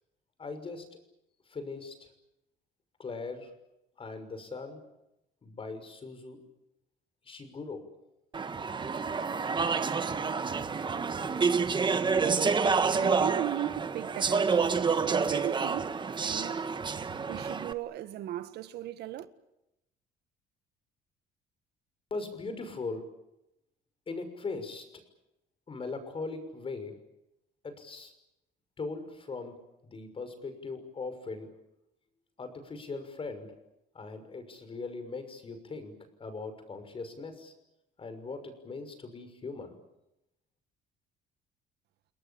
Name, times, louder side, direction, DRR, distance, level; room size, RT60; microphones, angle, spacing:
voice 1, 0.4-0.9 1.5-2.1 3.0-3.5 4.0-4.8 5.4-6.4 7.2-7.9 22.1-23.1 24.1-24.8 25.7-27.0 27.6-28.1 28.8-29.6 29.9-31.5 32.4-33.5 33.9-35.9 36.2-37.5 38.0-39.8, left 3 dB, 30° left, 6.2 m, -39 dB
Speech / Chatter, 8.3-17.7, right 5 dB, 25° right, 1.4 m, -28 dB
voice 2, 12.2-16.7 17.3-19.3, right 13 dB, 75° right, 1.7 m, -38 dB
30.0 x 19.5 x 8.7 m
cardioid pair, 110°, 17 cm